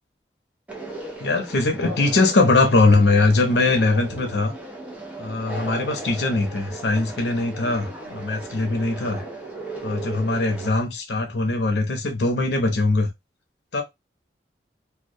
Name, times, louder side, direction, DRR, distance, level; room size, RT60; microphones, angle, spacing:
Conversation, 0.7-10.7, right 2 dB, 10° right, 0.5 m, -36 dB
voice 1, 1.2-4.5 5.2-9.2 9.8-13.1 13.7-13.8, left 2 dB, 75° left, 0.7 m, -21 dB
2.2 x 2.2 x 2.6 m
head